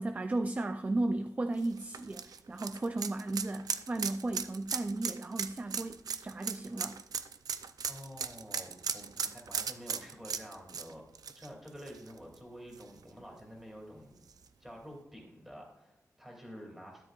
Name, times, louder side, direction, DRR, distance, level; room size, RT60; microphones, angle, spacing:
voice 1, 0.0-7.0, right 2 dB, 25° right, 8 dB, 0.4 m, -35 dB
sound 1, 1.6-12.4 12.7-12.8 14.3-14.4, right 6 dB, 80° right, 0.5 m, -37 dB
voice 2, 7.9-11.0 11.3-14.2 14.6-17.0, equal, 5° right, -1 dB, 2.6 m, -49 dB
12.5 x 10.0 x 2.4 m, 0.91 s
wide cardioid pair, 145°, 6 cm